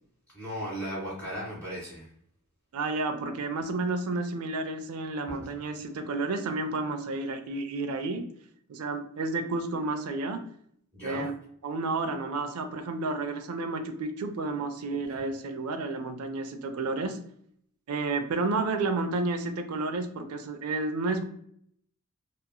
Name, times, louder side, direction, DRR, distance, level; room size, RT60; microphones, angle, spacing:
voice 1, 0.3-2.1 5.3-5.5 10.9-11.2, equal, 5° left, -7 dB, 1.3 m, -36 dB
voice 2, 2.7-8.2 8.7-10.4 11.0-11.3 11.6-17.2 17.9-21.2, right 3 dB, 85° right, 7 dB, 0.4 m, -31 dB
2.9 x 2.4 x 2.2 m, 0.67 s
head